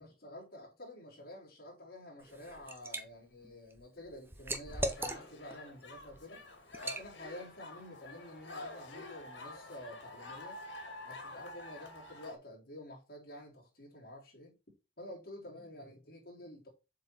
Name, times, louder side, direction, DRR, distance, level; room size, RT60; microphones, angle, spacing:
voice 1, 0.0-6.4 6.8-10.6 11.0-14.5 15.0-16.7, left 1 dB, 55° left, 3.4 m, -49 dB
Liquid, 2.2-3.0 3.4-5.5 6.0-6.2 6.7-7.1, right 1 dB, 10° right, 0.8 m, -38 dB
sound 1, 4.7-12.4, left 2 dB, 80° left, 2.3 m, -48 dB
7.4 x 4.6 x 4.5 m
head